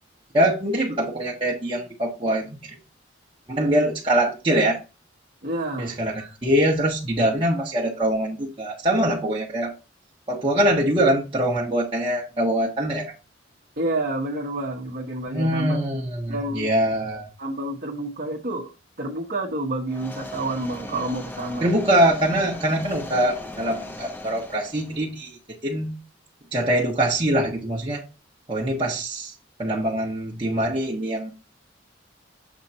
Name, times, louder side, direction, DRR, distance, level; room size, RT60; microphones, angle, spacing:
voice 1, 0.3-2.8 3.5-4.8 5.8-9.7 10.3-13.1 15.3-17.3 21.6-26.0 26.5-28.0 28.5-29.3 29.6-31.3, right 1 dB, 30° right, 1.3 m, -23 dB
voice 2, 5.4-6.0 13.8-15.8 16.3-16.7 17.4-18.7 19.0-21.7, right 2 dB, 50° right, 1.2 m, -29 dB
sound 1, 19.9-25.1, left 1 dB, 10° left, 0.7 m, -37 dB
7.3 x 4.2 x 4.3 m
head